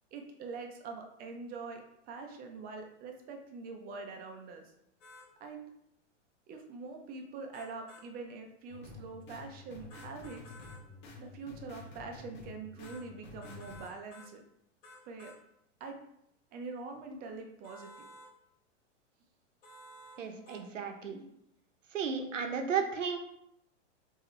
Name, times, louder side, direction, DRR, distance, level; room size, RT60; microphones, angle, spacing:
voice 1, 0.1-4.7 5.4-5.7 6.5-10.5 11.2-14.4 15.0-15.3 15.8-16.0 16.5-18.1, right 4 dB, 25° right, 4 dB, 0.6 m, -44 dB
sound 1, 5.0-5.3 7.5-8.1 9.9-10.8 12.8-13.0 13.4-14.3 14.8-15.4 17.6-18.3 19.6-20.2 20.5-20.6, left 1 dB, 70° left, 1.7 m, -53 dB
sound 2, 8.7-13.8, left 3 dB, 30° left, 1.5 m, -50 dB
voice 2, 20.2-21.2 21.9-23.2, right 6 dB, 80° right, 5 dB, 0.9 m, -34 dB
5.0 x 2.8 x 3.1 m, 0.77 s
hypercardioid pair, 125°, 37 cm